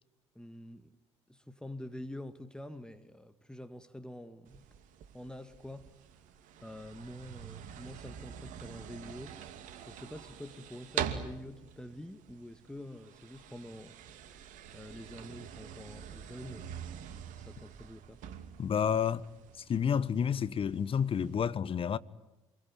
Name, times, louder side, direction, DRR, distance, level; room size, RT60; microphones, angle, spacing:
voice 1, 0.4-1.0 1.3-4.6 5.1-5.9 6.6-9.3 9.8-14.0 14.7-16.7 17.3-18.2, left 1 dB, 5° left, 1.9 m, -46 dB
sound 1, 4.5-21.5, right 9 dB, 60° right, 2.7 m, -45 dB
voice 2, 18.6-19.2 19.7-22.0, left 7 dB, 35° left, 1.2 m, -30 dB
27.0 x 23.0 x 9.6 m
hypercardioid pair, 60°, 15 cm